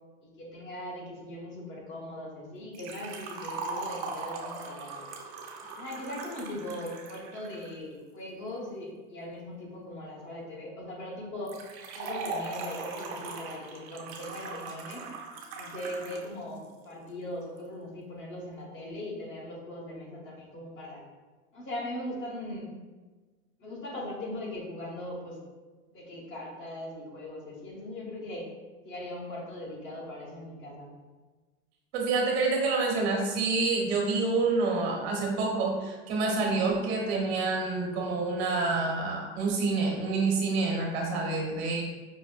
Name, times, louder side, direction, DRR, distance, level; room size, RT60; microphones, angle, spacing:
voice 1, 0.2-5.1 5.7-11.5 11.9-15.1 15.5-21.0 21.5-22.7 23.6-25.4 25.9-28.5 28.8-30.9, left 1 dB, 40° left, -2 dB, 1.2 m, -39 dB
Liquid, 2.7-7.7 11.5-16.3 16.6-16.7 17.6-17.7, right 3 dB, 55° right, 0.7 m, -39 dB
voice 2, 31.9-41.8, right 3 dB, 80° right, -1 dB, 1.1 m, -27 dB
5.5 x 2.1 x 2.5 m, 1.3 s
supercardioid pair, 105°, 31 cm